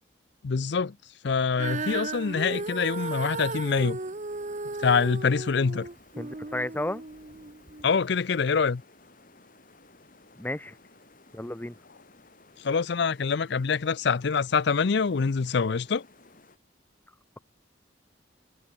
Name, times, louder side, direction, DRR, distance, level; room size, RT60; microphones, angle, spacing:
voice 1, 0.4-1.0 1.2-4.0 4.8-5.9 7.8-8.8 12.6-16.0, left 5 dB, 60° left, 0.5 m, -25 dB
Female singing, 1.5-7.9 8.6-8.7, right 3 dB, 40° right, 1.1 m, -35 dB
sound 1, 2.0-16.6, left 2 dB, 45° left, 5.5 m, -56 dB
voice 2, 6.2-7.0 10.4-10.8 11.3-11.8, left 1 dB, 10° left, 0.7 m, -32 dB
head